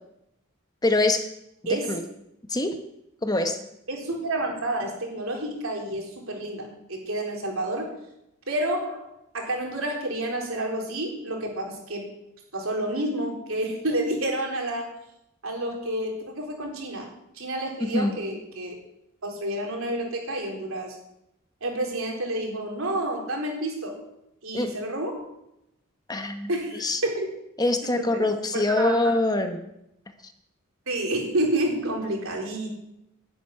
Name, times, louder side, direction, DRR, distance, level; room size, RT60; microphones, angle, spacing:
voice 1, 0.8-1.3 1.7-2.0 2.5-2.8 3.2-3.6 17.8-18.2 24.5-24.7 26.1-27.0 27.6-29.6, left 2 dB, 20° left, 7 dB, 1.0 m, -24 dB
voice 2, 1.7-2.0 3.9-7.9 8.5-9.0 9.3-12.1 12.5-15.0 15.4-17.1 17.3-18.8 19.2-20.9 21.6-24.0 24.4-25.2 26.5-27.3 27.8-29.0 30.9-32.7, right 1 dB, 70° right, 0 dB, 4.1 m, -29 dB
11.5 x 7.9 x 9.5 m, 0.83 s
head